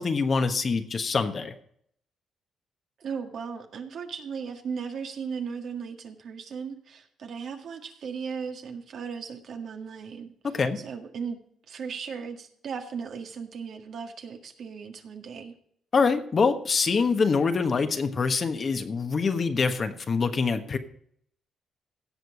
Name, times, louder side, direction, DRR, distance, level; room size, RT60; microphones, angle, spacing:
voice 1, 0.0-1.5 10.5-10.8 15.9-20.8, left 4 dB, 40° left, 8 dB, 1.3 m, -25 dB
voice 2, 3.0-11.4 11.7-15.5, right 6 dB, 60° right, 5 dB, 1.7 m, -37 dB
16.5 x 6.2 x 4.9 m, 0.64 s
cardioid pair, 90°, 0 cm